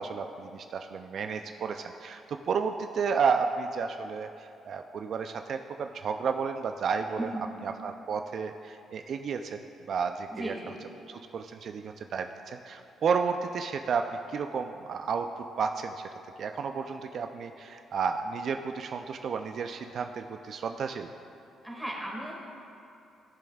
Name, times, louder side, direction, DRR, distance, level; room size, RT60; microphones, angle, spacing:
voice 1, 0.0-9.6 9.9-10.7 11.1-16.0 16.4-21.1, right 5 dB, 60° right, 6 dB, 0.3 m, -32 dB
voice 2, 10.3-10.8 21.6-22.3, right 1 dB, ahead, -3 dB, 2.0 m, -36 dB
15.5 x 7.1 x 2.3 m, 2.7 s
cardioid pair, 90°, 0 cm